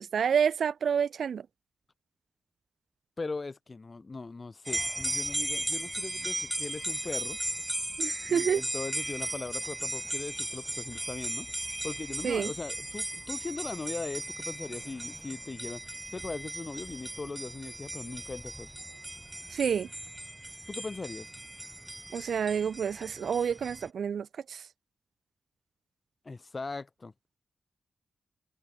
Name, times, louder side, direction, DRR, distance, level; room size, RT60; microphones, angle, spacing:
voice 1, 0.0-1.5 8.0-8.6 12.2-12.5 19.5-19.9 22.1-24.6, right 7 dB, 80° right, 4.2 m, -29 dB
voice 2, 3.2-7.4 8.3-11.5 11.8-18.7 20.7-21.3 26.2-27.1, left 3 dB, 45° left, 5.0 m, -39 dB
sound 1, 4.6-23.9, right 1 dB, 15° right, 3.9 m, -37 dB
cardioid pair, 50°, 0 cm